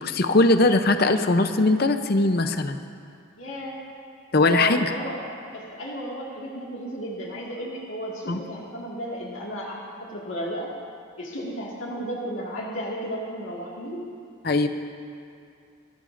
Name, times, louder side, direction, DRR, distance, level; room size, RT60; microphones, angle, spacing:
voice 1, 0.0-2.8 4.3-4.8 8.3-8.4 14.4-14.7, left 2 dB, 50° left, 8 dB, 0.6 m, -20 dB
voice 2, 3.4-3.8 4.3-5.2 5.5-10.7 11.2-14.1, equal, 70° left, -4 dB, 2.0 m, -33 dB
25.5 x 13.5 x 2.6 m, 2.4 s
head